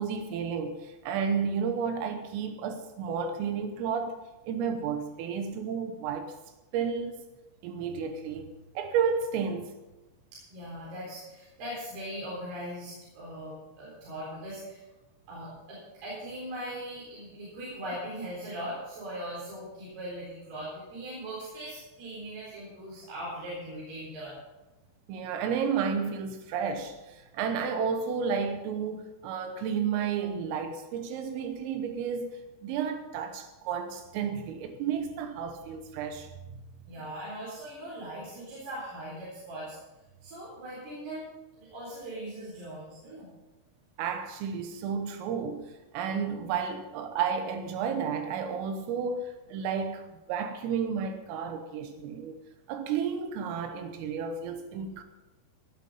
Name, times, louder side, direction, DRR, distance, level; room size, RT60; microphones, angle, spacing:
voice 1, 0.0-4.2 4.5-6.3 6.7-7.1 7.6-9.7 25.1-36.3 44.0-50.0 50.3-52.4 52.7-55.0, right 6 dB, 85° right, 3.6 m, -32 dB
voice 2, 10.3-14.8 15.3-24.4 36.9-39.8 40.2-41.3 41.6-43.3, right 1 dB, 55° right, 5.9 m, -40 dB
17.5 x 8.5 x 5.4 m
omnidirectional pair, 5.8 m